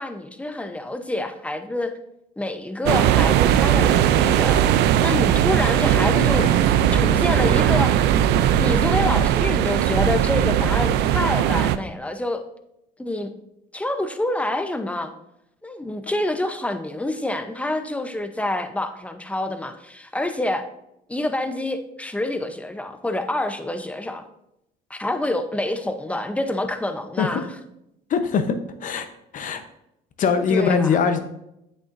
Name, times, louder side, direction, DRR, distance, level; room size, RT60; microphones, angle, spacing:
voice 1, 0.0-1.9 2.4-6.4 6.9-8.3 8.6-12.4 13.0-13.3 13.7-15.1 15.6-20.6 21.1-24.3 24.9-27.5 30.5-31.0, left 1 dB, 10° left, 8 dB, 0.7 m, -27 dB
sound 1, 2.9-11.8, right 10 dB, 85° right, 0.4 m, -19 dB
voice 2, 28.1-29.1 29.3-29.6 30.2-31.2, left 5 dB, 50° left, 9 dB, 0.8 m, -22 dB
7.9 x 6.7 x 2.6 m, 0.82 s
cardioid pair, 110°, 17 cm